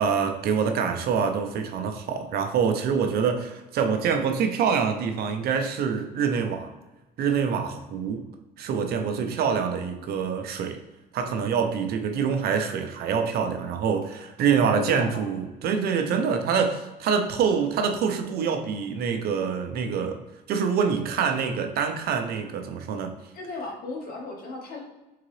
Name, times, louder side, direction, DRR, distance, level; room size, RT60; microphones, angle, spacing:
voice 1, 0.0-6.7 7.2-8.3 8.6-10.8 11.1-20.2 20.5-23.1, right 6 dB, 65° right, 0.6 m, -25 dB
voice 2, 14.8-15.3 23.3-24.8, left 3 dB, 60° left, 1.2 m, -36 dB
3.8 x 3.7 x 3.2 m
cardioid pair, 110°, 17 cm